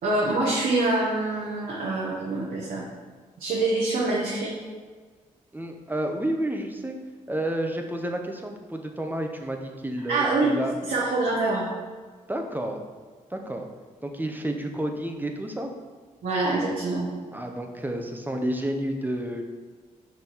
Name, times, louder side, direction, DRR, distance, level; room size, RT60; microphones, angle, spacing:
voice 1, 0.0-2.9 3.4-4.5 10.1-10.5 10.9-11.7 16.2-17.1, right 2 dB, 80° right, -5 dB, 1.4 m, -25 dB
voice 2, 5.5-7.0 7.3-10.8 12.3-12.8 13.3-13.7 14.0-15.7 17.3-19.4, right 1 dB, 10° right, 3 dB, 1.1 m, -30 dB
5.4 x 5.3 x 4.6 m, 1.5 s
cardioid pair, 60°, 15 cm